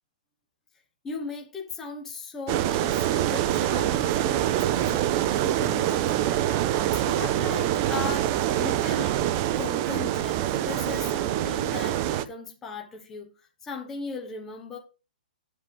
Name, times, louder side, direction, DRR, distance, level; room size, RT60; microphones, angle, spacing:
voice 1, 1.0-9.2 9.6-14.8, left 4 dB, 5° left, 1.0 m, -38 dB
sound 1, 2.5-12.3, right 12 dB, 20° right, 0.4 m, -25 dB
10.0 x 7.6 x 3.6 m
hypercardioid pair, 180°, 5 cm